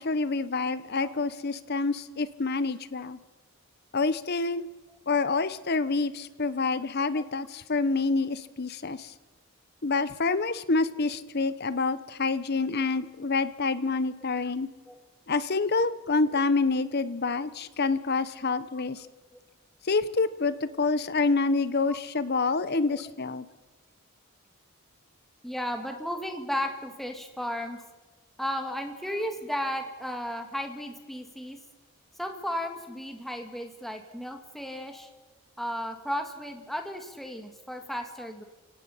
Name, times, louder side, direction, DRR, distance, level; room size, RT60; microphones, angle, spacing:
voice 1, 0.0-3.2 3.9-4.7 5.1-9.1 9.8-14.7 15.3-19.1 19.8-23.5, left 3 dB, 45° left, 15 dB, 0.8 m, -27 dB
voice 2, 25.4-27.8 28.4-31.6 32.2-35.1 35.6-38.4, equal, ahead, 5 dB, 1.8 m, -34 dB
29.5 x 17.5 x 5.6 m, 1.2 s
head